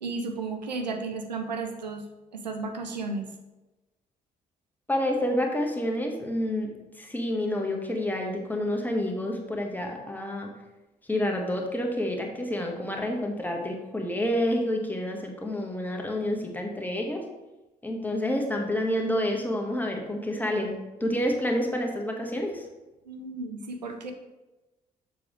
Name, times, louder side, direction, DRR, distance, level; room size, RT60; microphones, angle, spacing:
voice 1, 0.0-2.1 2.3-3.3 23.1-24.1, right 3 dB, 85° right, 5 dB, 0.6 m, -33 dB
voice 2, 4.9-6.7 7.0-10.5 11.1-17.2 17.8-20.7 21.0-22.6, left 1 dB, 10° left, 1 dB, 1.5 m, -28 dB
7.0 x 6.4 x 3.1 m, 1.1 s
figure-of-eight pair, 45°, 21 cm